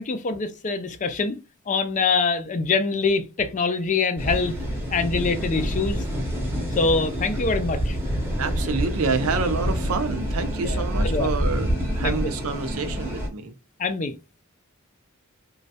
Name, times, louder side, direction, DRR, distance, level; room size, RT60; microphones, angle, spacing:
voice 1, 0.0-1.4 1.7-4.6 4.9-6.0 6.8-8.0 10.6-11.3 12.0-12.2 13.8-14.1, left 4 dB, 35° left, 0.4 m, -24 dB
sound 1, 4.2-13.3, equal, 10° right, 0.8 m, -27 dB
voice 2, 8.4-13.5, right 4 dB, 85° right, 0.6 m, -28 dB
3.1 x 2.3 x 2.7 m
head